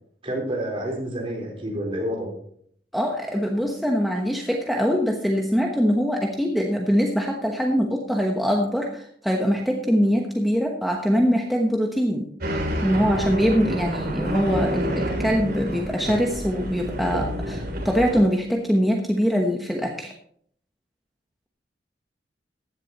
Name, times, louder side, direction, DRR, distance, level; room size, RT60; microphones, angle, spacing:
voice 1, 0.2-2.4, equal, 30° right, -1 dB, 4.1 m, -29 dB
voice 2, 2.9-20.1, equal, ahead, 0 dB, 1.1 m, -23 dB
sound 1, 12.4-18.2, equal, 60° right, 3.4 m, -28 dB
15.5 x 11.0 x 3.0 m, 0.63 s
head